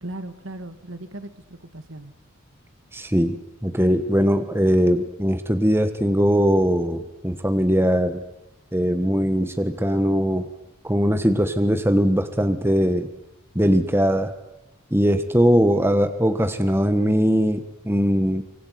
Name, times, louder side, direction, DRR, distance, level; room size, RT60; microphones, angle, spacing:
voice 1, 0.0-2.1, right 1 dB, 60° right, 10 dB, 2.0 m, -37 dB
voice 2, 2.9-8.2 8.7-10.5 10.8-13.1 13.5-14.3 14.9-18.4, equal, 10° right, 9 dB, 1.4 m, -20 dB
25.0 x 24.0 x 9.5 m, 0.89 s
head